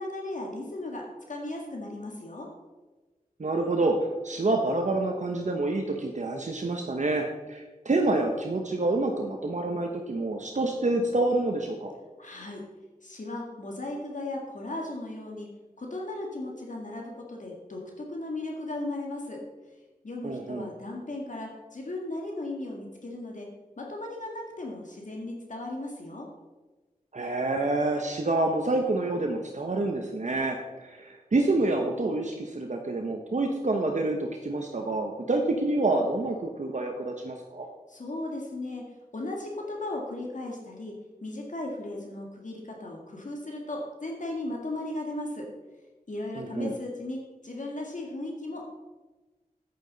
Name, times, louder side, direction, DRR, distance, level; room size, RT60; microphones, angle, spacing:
voice 1, 0.0-2.5 12.2-12.6 13.0-15.5 15.8-19.4 20.0-23.5 23.8-26.3 37.9-38.9 39.1-40.9 41.2-45.5 46.1-48.7, left 2 dB, 60° left, 0 dB, 1.8 m, -36 dB
voice 2, 3.4-11.9 20.2-20.7 27.1-37.7 46.4-46.7, right 2 dB, 55° right, 2 dB, 1.0 m, -27 dB
9.7 x 9.0 x 4.0 m, 1.2 s
wide cardioid pair, 50°, 15 cm